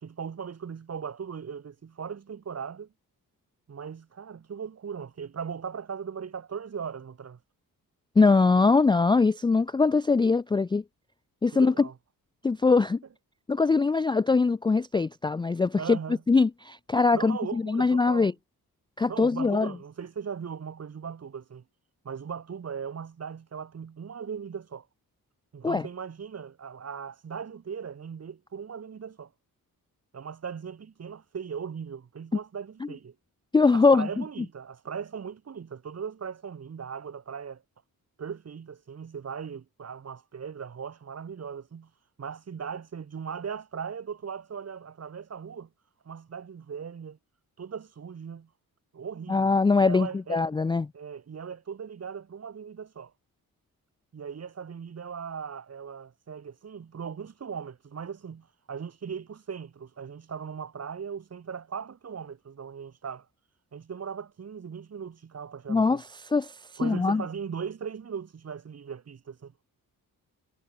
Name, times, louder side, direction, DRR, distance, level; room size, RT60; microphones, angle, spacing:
voice 1, 0.0-2.9 3.7-7.4 11.5-11.9 15.8-16.2 17.1-18.3 19.1-21.6 22.0-24.9 25.5-29.3 30.1-33.2 33.7-37.6 38.2-41.9 42.2-45.7 46.1-47.2 47.6-48.5 48.9-49.5 49.8-50.4 50.9-53.1 54.1-63.3 63.7-66.0 66.8-69.5, right 6 dB, 45° right, 3.8 m, -38 dB
voice 2, 8.2-10.8 11.4-11.9 12.4-13.0 13.5-16.0 16.3-18.3 19.0-19.7 25.6-25.9 33.5-34.2 49.3-50.9 65.7-66.5 66.8-67.2, left 4 dB, 15° left, 0.3 m, -22 dB
wide cardioid pair, 145°, 35 cm